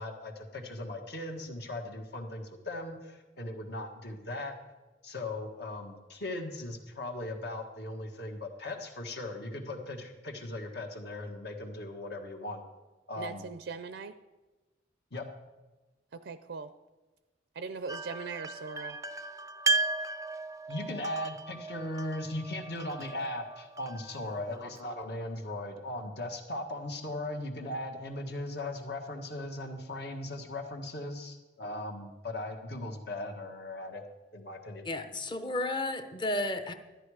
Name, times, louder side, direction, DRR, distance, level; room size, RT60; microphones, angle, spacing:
voice 1, 0.0-2.9 3.4-4.5 5.0-12.6 13.1-13.5 15.1-15.2 20.7-34.0 34.3-34.8, left 1 dB, 65° left, 2 dB, 1.6 m, -38 dB
voice 2, 13.2-14.1 16.1-16.7 17.6-19.0, right 4 dB, 75° right, 11 dB, 0.5 m, -40 dB
sound 1, 17.9-24.8, right 2 dB, 20° right, 0.4 m, -35 dB
voice 3, 34.8-36.7, left 1 dB, 25° left, 8 dB, 0.8 m, -32 dB
13.0 x 10.5 x 4.9 m, 1.2 s
head